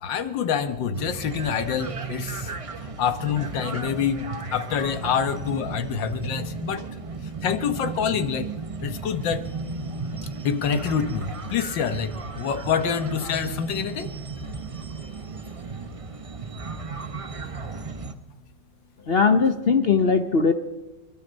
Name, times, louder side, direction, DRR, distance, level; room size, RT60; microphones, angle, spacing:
voice 1, 0.0-2.5 3.0-6.8 7.4-8.5 8.8-9.4 10.4-14.1, left 7 dB, 90° left, 9 dB, 1.8 m, -26 dB
sound 1, 0.9-18.1, right 4 dB, 40° right, 0.4 m, -35 dB
voice 2, 19.1-20.5, left 5 dB, 50° left, 8 dB, 0.7 m, -19 dB
28.0 x 12.5 x 4.0 m, 1.1 s
omnidirectional pair, 2.0 m